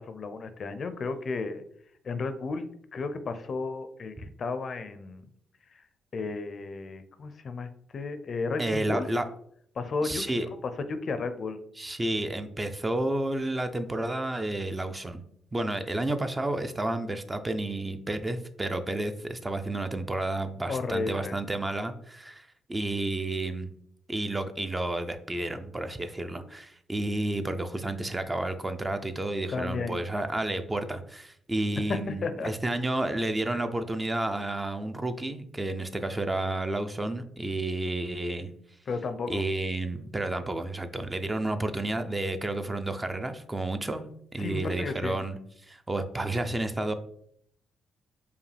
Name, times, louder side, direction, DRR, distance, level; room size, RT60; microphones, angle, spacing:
voice 1, 0.0-1.6 2.0-2.7 2.9-5.2 6.1-9.1 9.8-10.6 10.9-11.6 20.7-21.3 29.5-30.0 31.9-32.5 38.9-39.4 44.4-45.2, left 4 dB, 50° left, 10 dB, 0.5 m, -33 dB
voice 2, 8.6-9.3 10.0-10.5 11.8-15.2 15.5-23.7 24.1-38.5 39.3-46.9, right 2 dB, 20° right, 8 dB, 0.4 m, -31 dB
4.8 x 2.6 x 3.3 m, 0.68 s
cardioid pair, 90°, 0 cm